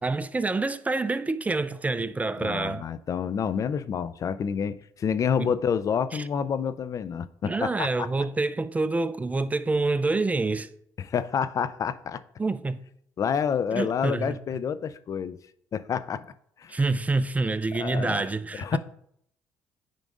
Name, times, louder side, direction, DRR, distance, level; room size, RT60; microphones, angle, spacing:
voice 1, 0.0-2.9 5.4-5.5 6.1-6.2 7.4-10.7 12.4-12.8 13.7-14.3 16.7-18.8, right 3 dB, 20° right, 0.4 m, -27 dB
voice 2, 2.4-8.1 11.0-12.2 13.2-15.4 15.7-16.3 16.6-16.8 17.8-18.2 18.5-18.8, left 7 dB, 50° left, 0.4 m, -28 dB
9.0 x 5.1 x 2.5 m
supercardioid pair, 60°, 7 cm